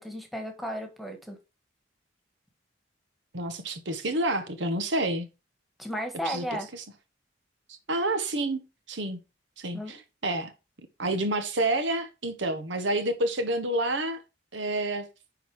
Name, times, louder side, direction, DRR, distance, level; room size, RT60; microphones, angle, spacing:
voice 1, 0.0-1.4 5.8-6.7 9.7-10.0, equal, ahead, 1.6 m, -34 dB
voice 2, 3.3-5.3 6.2-6.8 7.9-8.6 8.9-9.2 9.6-10.0 10.2-10.5 11.0-14.2 14.5-15.1, right 1 dB, 80° right, 1.4 m, -29 dB
10.0 x 4.0 x 4.9 m
head